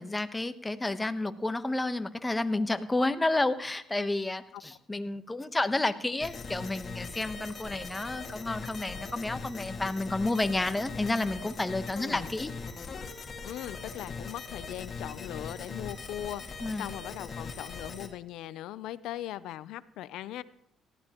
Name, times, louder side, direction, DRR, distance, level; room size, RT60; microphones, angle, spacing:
voice 1, 0.0-12.5 16.6-16.9, left 2 dB, 15° left, 10 dB, 1.0 m, -30 dB
sound 1, 6.2-18.1, left 4 dB, 40° left, 2.0 m, -41 dB
voice 2, 13.4-20.4, left 13 dB, 75° left, 16 dB, 0.6 m, -40 dB
18.5 x 13.0 x 3.0 m, 0.76 s
supercardioid pair, 70°, 0 cm